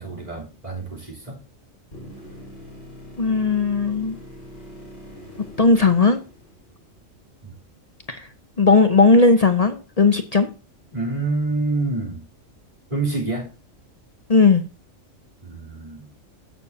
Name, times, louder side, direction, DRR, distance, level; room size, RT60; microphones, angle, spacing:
voice 1, 0.0-1.4 7.4-7.5 10.9-12.2 12.9-13.5 15.4-16.1, right 3 dB, 30° right, -2 dB, 3.6 m, -27 dB
sound 1, 1.9-7.0 11.0-11.1, equal, 55° left, 5.5 m, -42 dB
voice 2, 3.2-4.1 5.6-6.2 8.1-8.2 8.6-10.5 14.3-14.6, left 4 dB, 35° left, 8 dB, 0.7 m, -16 dB
16.5 x 6.8 x 2.8 m, 0.32 s
omnidirectional pair, 1.3 m